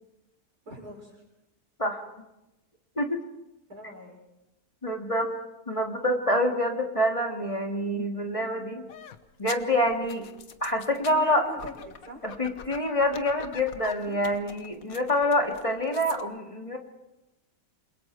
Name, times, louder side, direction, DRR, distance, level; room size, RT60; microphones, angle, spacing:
voice 1, 0.6-1.2 3.7-4.2 11.0-11.7 12.1-12.3 14.0-14.2, equal, 85° right, 0 dB, 6.1 m, -41 dB
voice 2, 4.8-5.3 5.7-8.9 9.4-10.3 10.6-11.5 12.2-16.8, left 1 dB, 20° left, 2 dB, 2.1 m, -26 dB
sound 1, 8.9-16.2, left 7 dB, 65° left, 1.5 m, -45 dB
28.5 x 22.0 x 4.6 m, 0.95 s
omnidirectional pair, 1.6 m